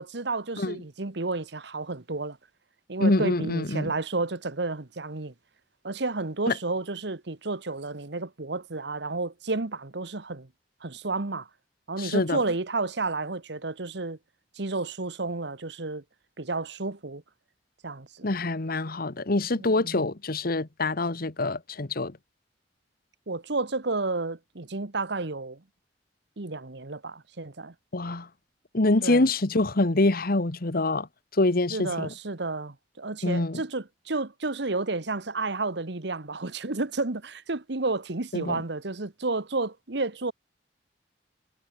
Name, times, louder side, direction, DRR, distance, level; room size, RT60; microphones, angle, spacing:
voice 1, 0.0-2.4 2.9-5.3 5.8-10.5 10.8-11.5 11.9-14.2 14.5-16.0 16.4-17.2 17.8-18.3 19.6-20.0 23.3-25.6 26.4-27.7 29.0-29.3 31.7-40.3, right 3 dB, 70° right, 1.4 m, -31 dB
voice 2, 3.0-3.9 6.5-6.6 12.0-12.4 18.2-22.2 27.9-28.3 28.7-31.1 31.3-32.1 33.2-33.6 38.3-38.6, left 2 dB, 55° left, 1.3 m, -25 dB
head